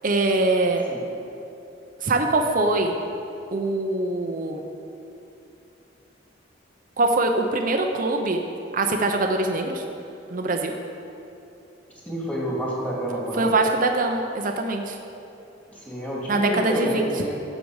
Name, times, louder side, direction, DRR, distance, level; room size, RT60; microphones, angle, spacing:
voice 1, 0.0-0.8 2.0-3.0 3.5-4.6 7.0-8.4 8.7-9.8 10.3-10.7 13.3-15.0 16.3-17.3, right 2 dB, 50° right, 3 dB, 0.7 m, -23 dB
voice 2, 12.1-13.5 15.7-17.3, right 1 dB, 10° left, -5 dB, 2.4 m, -28 dB
12.5 x 7.6 x 4.8 m, 2.8 s
head